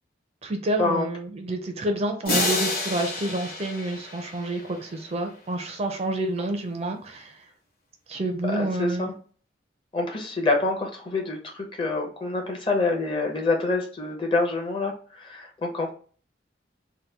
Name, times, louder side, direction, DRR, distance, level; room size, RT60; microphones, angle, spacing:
voice 1, 0.4-7.3 8.1-9.1, right 1 dB, 35° right, 4 dB, 0.4 m, -29 dB
sound 1, 2.3-5.1, left 2 dB, 50° left, 1.0 m, -29 dB
voice 2, 8.4-9.1 9.9-15.9, left 3 dB, 30° left, 1 dB, 0.6 m, -26 dB
2.8 x 2.2 x 3.3 m, 0.42 s
head